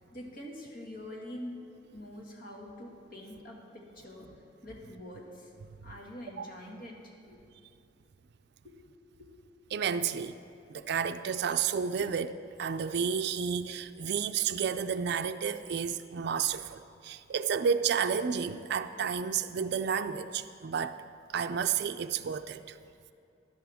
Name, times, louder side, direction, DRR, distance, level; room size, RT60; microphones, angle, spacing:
voice 1, 0.0-1.6 1.9-4.3 4.6-5.5 5.8-7.4 8.6-8.8 9.2-9.3 12.0-12.1, left 1 dB, 50° left, -1 dB, 1.8 m, -45 dB
voice 2, 9.7-10.3 10.7-12.3 12.6-21.0 21.3-22.8, right 7 dB, 60° right, 11 dB, 0.4 m, -31 dB
13.5 x 11.5 x 3.5 m, 2.6 s
head